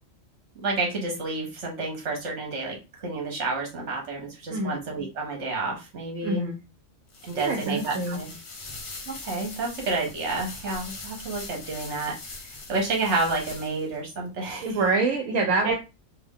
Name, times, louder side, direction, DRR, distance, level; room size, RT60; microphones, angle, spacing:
voice 1, 0.6-6.4 7.2-8.4 9.1-12.1 12.7-14.8 15.6-15.7, right 3 dB, 55° right, 0 dB, 1.4 m, -30 dB
voice 2, 6.2-6.5 7.4-8.2 14.6-15.7, right 3 dB, 75° right, 2 dB, 1.0 m, -25 dB
sound 1, 7.1-14.0, left 3 dB, 45° left, 0.8 m, -41 dB
3.6 x 2.3 x 3.6 m, 0.28 s
omnidirectional pair, 1.4 m